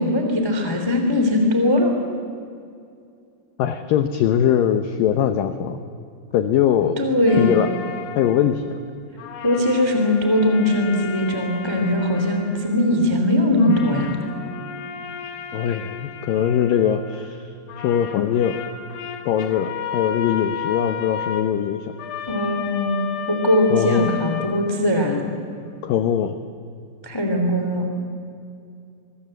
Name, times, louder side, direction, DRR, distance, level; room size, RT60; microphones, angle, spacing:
voice 1, 0.0-1.9 7.0-7.6 9.4-14.2 22.3-25.2 27.0-27.9, left 1 dB, 10° left, 3 dB, 1.5 m, -20 dB
voice 2, 3.6-5.8 6.3-7.0 7.4-7.7 8.1-8.8 15.5-18.6 19.3-21.9 23.7-24.1 25.8-26.4, left 9 dB, 80° left, 9 dB, 2.0 m, -21 dB
sound 1, 7.3-8.9 9.2-13.3 13.6-17.4 17.7-25.2, left 7 dB, 65° left, 2.1 m, -33 dB
24.5 x 22.5 x 7.8 m, 2.4 s
omnidirectional pair, 5.2 m